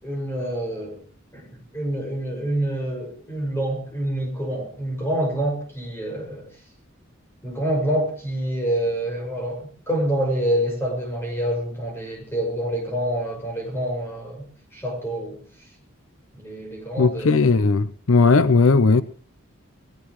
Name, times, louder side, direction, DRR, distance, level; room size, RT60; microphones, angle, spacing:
voice 1, 0.0-1.0 1.3-6.5 7.4-14.4 14.7-15.4 16.4-17.6, right 1 dB, 10° left, 6.1 m, -27 dB
voice 2, 17.0-19.0, left 4 dB, 75° left, 0.7 m, -17 dB
21.5 x 18.5 x 3.1 m
head